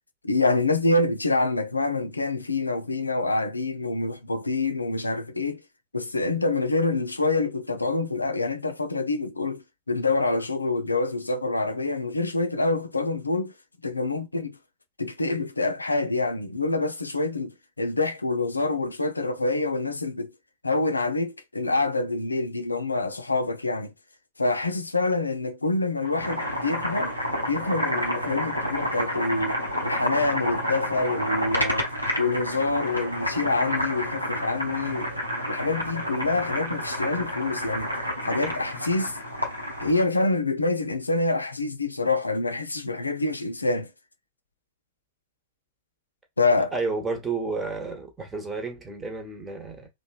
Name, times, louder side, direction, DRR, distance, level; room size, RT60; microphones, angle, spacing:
voice 1, 0.2-5.6 5.9-13.5 13.8-14.6 15.0-20.3 20.6-23.9 24.4-27.1 27.5-29.6 29.8-31.9 32.2-35.1 35.5-37.9 38.2-39.2 39.8-43.9 46.4-46.7, left 3 dB, 80° left, 0.4 m, -26 dB
Boiling, 26.0-40.0, equal, 85° right, 0.7 m, -29 dB
voice 2, 46.6-49.9, right 4 dB, 15° right, 1.0 m, -31 dB
2.9 x 2.1 x 2.4 m
figure-of-eight pair, 90°, 0 cm